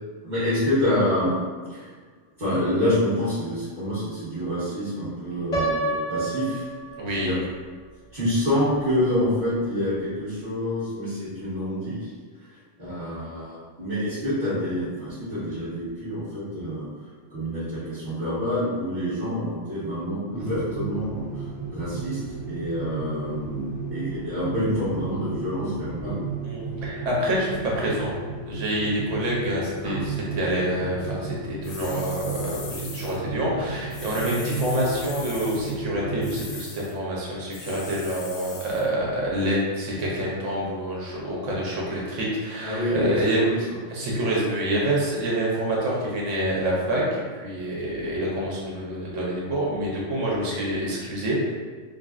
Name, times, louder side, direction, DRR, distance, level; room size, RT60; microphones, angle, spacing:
voice 1, 0.2-1.4 1.7-1.9 2.4-6.7 7.2-7.3 8.1-12.1 12.4-12.5 12.8-16.9 17.3-22.2 22.5-26.3 29.8-30.0 42.6-43.6 44.0-44.1, left 1 dB, 40° right, -15 dB, 1.2 m, -27 dB
Piano, 5.5-7.5, right 2 dB, 45° left, 0.6 m, -28 dB
voice 2, 7.0-7.3 26.4-28.1 28.5-43.4 43.9-47.0 47.3-51.5, right 1 dB, 75° right, -4 dB, 1.1 m, -27 dB
sound 1, 20.3-36.6, right 3 dB, ahead, 0.6 m, -34 dB
sound 2, 31.6-33.2 33.9-35.8 36.2-36.9 37.5-38.9, left 4 dB, 90° left, 0.9 m, -40 dB
3.7 x 2.0 x 2.4 m, 1.5 s
omnidirectional pair, 1.3 m